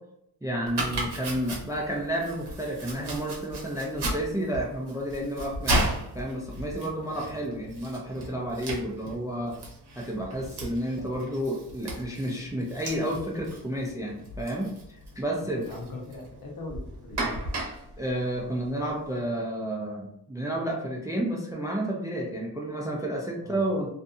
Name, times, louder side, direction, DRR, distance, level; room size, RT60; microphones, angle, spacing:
voice 1, 0.4-5.8 6.1-9.6 10.0-14.7 15.2-15.6 18.0-23.9, right 1 dB, 10° right, -1 dB, 0.3 m, -31 dB
Domestic sounds home sounds, 0.7-19.1, right 1 dB, 75° right, 0.8 m, -35 dB
voice 2, 15.7-17.4 23.4-23.6, left 2 dB, 55° left, 0 dB, 0.7 m, -41 dB
2.6 x 2.5 x 2.3 m, 0.77 s
wide cardioid pair, 110°, 40 cm